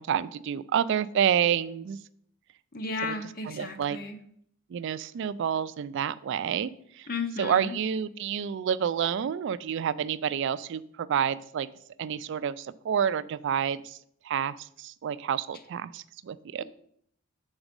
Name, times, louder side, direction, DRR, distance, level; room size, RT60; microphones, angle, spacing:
voice 1, 0.0-2.0 3.0-3.1 3.5-4.0 4.7-6.7 7.0-7.1 7.4-11.7 12.0-14.0 14.2-16.6, right 8 dB, 60° right, 16 dB, 0.3 m, -29 dB
voice 2, 2.7-4.2 7.1-7.7, left 3 dB, 45° left, 7 dB, 0.8 m, -34 dB
7.1 x 4.0 x 5.2 m, 0.67 s
head